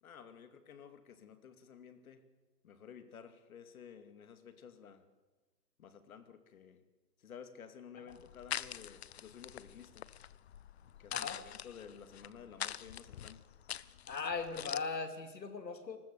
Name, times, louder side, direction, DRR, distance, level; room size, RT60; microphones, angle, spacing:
voice 1, 0.0-2.3 2.6-5.1 5.8-6.9 7.2-10.1 10.9-13.4, left 7 dB, 60° left, 10 dB, 2.5 m, -53 dB
sound 1, 8.1-14.8, left 10 dB, 40° left, 0.7 m, -45 dB
voice 2, 14.1-16.0, left 4 dB, 90° left, 8 dB, 3.3 m, -39 dB
29.0 x 20.5 x 6.9 m, 1.2 s
hypercardioid pair, 150°, 49 cm